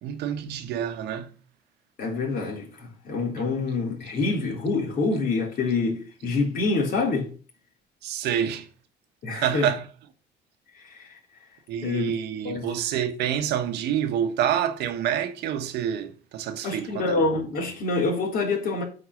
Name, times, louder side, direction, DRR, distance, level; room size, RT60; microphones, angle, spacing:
voice 1, 0.0-1.3 8.0-8.7 9.3-9.9 11.7-17.2, right 9 dB, 80° right, 1.3 m, -27 dB
voice 2, 2.0-7.3 9.2-9.7 10.8-11.2 11.8-12.1 12.4-12.7 16.6-18.8, left 3 dB, 55° left, 3.7 m, -26 dB
8.4 x 4.5 x 7.0 m
cardioid pair, 110°, 17 cm